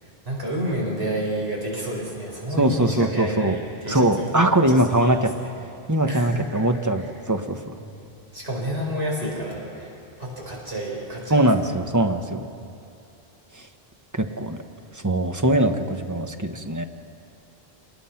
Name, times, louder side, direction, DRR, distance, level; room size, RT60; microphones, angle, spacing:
voice 1, 0.0-5.2 6.1-6.7 8.3-11.5, right 1 dB, 75° right, -3 dB, 5.1 m, -30 dB
voice 2, 2.6-3.6 3.9-5.3 5.9-7.7 11.3-12.5 13.5-13.7 14.1-14.6 14.9-16.8, right 1 dB, 20° right, 5 dB, 1.0 m, -21 dB
27.5 x 20.0 x 5.8 m, 2.6 s
omnidirectional pair, 1.0 m